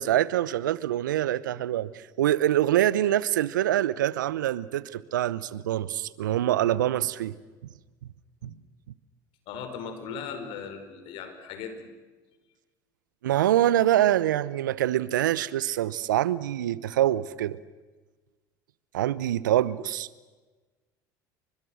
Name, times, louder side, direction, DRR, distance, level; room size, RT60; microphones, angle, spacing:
voice 1, 0.0-7.4 8.4-8.5 13.2-17.6 18.9-20.1, right 12 dB, 85° right, 19 dB, 0.9 m, -25 dB
voice 2, 9.5-11.8, left 6 dB, 60° left, 7 dB, 5.0 m, -38 dB
29.0 x 24.5 x 6.4 m, 1.3 s
hypercardioid pair, 75°, 10 cm